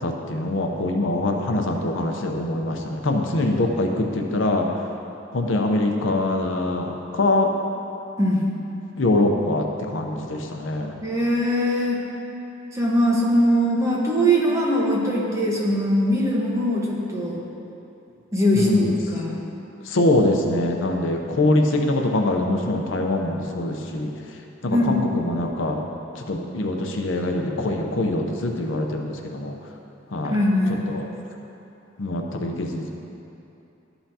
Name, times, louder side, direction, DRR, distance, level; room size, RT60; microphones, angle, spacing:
voice 1, 0.0-4.7 5.3-7.5 9.0-11.0 18.5-18.9 19.8-24.1 24.6-25.8 26.2-29.6 30.1-30.3 30.9-31.1 32.0-32.9, left 2 dB, 85° left, 2 dB, 0.7 m, -23 dB
voice 2, 11.0-12.0 12.7-17.4 18.3-19.4 24.7-25.0 30.2-30.8, equal, 15° right, -5 dB, 1.2 m, -21 dB
12.5 x 5.6 x 2.8 m, 2.8 s
head